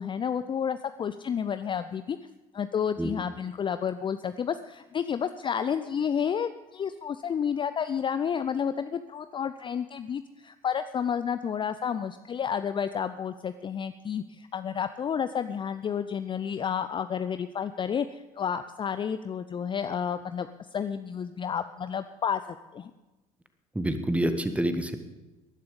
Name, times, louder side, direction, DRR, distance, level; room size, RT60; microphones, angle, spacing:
voice 1, 0.0-2.2 2.5-22.9, left 7 dB, 25° left, 11 dB, 0.5 m, -31 dB
voice 2, 23.7-25.0, right 1 dB, 5° right, 9 dB, 1.5 m, -27 dB
19.5 x 11.5 x 5.2 m, 1.1 s
figure-of-eight pair, 60°, 19 cm